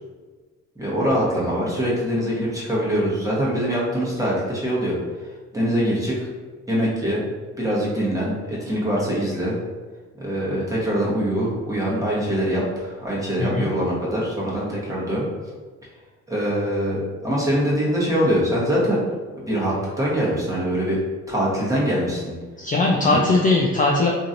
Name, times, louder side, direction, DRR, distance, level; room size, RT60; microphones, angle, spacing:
voice 1, 0.8-4.9 5.5-6.3 6.7-7.2 7.6-9.6 10.2-15.2 16.3-19.0 19.4-21.0 21.3-22.3 23.0-23.2, equal, 10° right, -6 dB, 1.0 m, -23 dB
voice 2, 13.4-13.7 22.6-24.1, left 3 dB, 30° left, -2 dB, 0.3 m, -19 dB
3.0 x 2.6 x 2.5 m, 1.4 s
cardioid pair, 90°, 30 cm